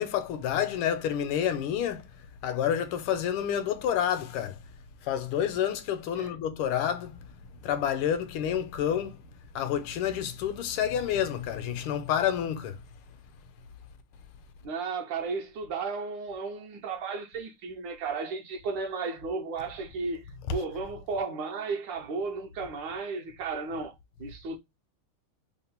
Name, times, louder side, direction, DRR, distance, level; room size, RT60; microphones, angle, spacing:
voice 1, 0.0-4.7 5.0-12.8 20.5-20.6, left 9 dB, 80° left, 1.4 m, -29 dB
voice 2, 14.6-20.2 20.5-23.9 24.2-24.6, right 4 dB, 70° right, 1.2 m, -34 dB
3.6 x 2.1 x 4.1 m
omnidirectional pair, 2.4 m